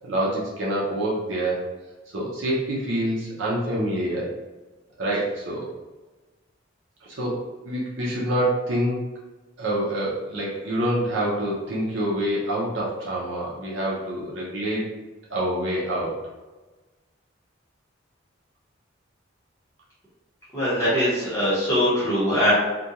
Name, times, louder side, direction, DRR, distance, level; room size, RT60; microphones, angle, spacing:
voice 1, 0.0-1.7 2.1-4.3 5.0-5.7 7.0-7.4 7.7-9.0 9.6-14.9 15.3-16.1, right 1 dB, 75° right, -5 dB, 0.6 m, -26 dB
voice 2, 20.5-22.5, equal, 15° left, -10 dB, 0.9 m, -22 dB
2.5 x 2.2 x 2.8 m, 1.2 s
head